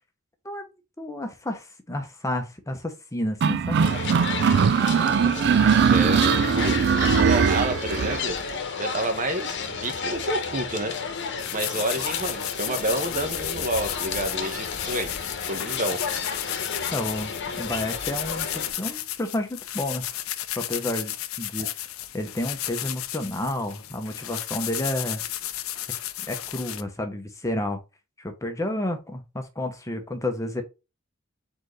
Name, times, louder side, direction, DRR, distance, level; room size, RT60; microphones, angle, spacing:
voice 1, 1.0-3.8 16.9-20.2 20.6-21.7 22.1-25.2 26.3-27.8 28.2-30.6, left 1 dB, 15° left, 0.8 m, -30 dB
sound 1, 3.4-8.2, right 6 dB, 55° right, 0.3 m, -20 dB
sound 2, 3.8-18.7, left 5 dB, 60° left, 1.0 m, -32 dB
voice 2, 5.9-6.8 7.1-8.4 8.8-10.9 11.5-15.2 15.5-16.0 21.6-21.7, right 1 dB, 40° right, 1.1 m, -29 dB
sound 3, 11.4-26.8, left 13 dB, 80° left, 0.6 m, -33 dB
4.4 x 3.9 x 3.1 m
head